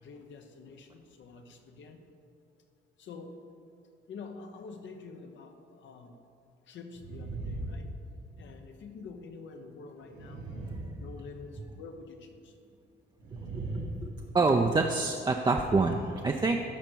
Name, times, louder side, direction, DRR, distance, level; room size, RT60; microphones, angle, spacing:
voice 1, 0.0-2.0 3.0-3.4 4.1-6.1 6.7-7.9 8.4-10.4 11.0-12.2, left 4 dB, 70° left, 5 dB, 0.9 m, -47 dB
sound 1, 6.9-8.5 10.0-11.6 13.2-14.4, right 2 dB, 85° right, 1.7 m, -39 dB
voice 2, 13.5-16.6, right 3 dB, 20° right, 2 dB, 0.5 m, -27 dB
12.5 x 5.1 x 4.5 m, 2.4 s
cardioid pair, 90°, 20 cm